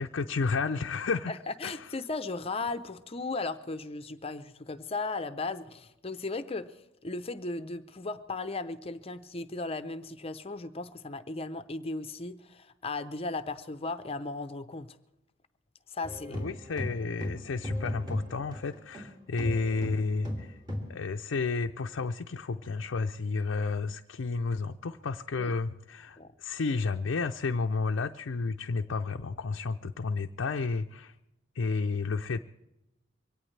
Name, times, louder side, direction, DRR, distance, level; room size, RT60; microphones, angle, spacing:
voice 1, 0.0-1.3 1.6-1.9 16.3-20.6 20.9-31.1 31.5-32.4, left 4 dB, 70° left, 4 dB, 0.5 m, -31 dB
voice 2, 1.3-15.0 15.9-16.4 25.4-25.5 26.2-26.3, left 3 dB, 30° left, 10 dB, 0.7 m, -36 dB
sound 1, 16.0-19.1 19.4-21.0, left 1 dB, 20° right, 2.6 m, -36 dB
23.5 x 18.0 x 3.3 m, 0.96 s
head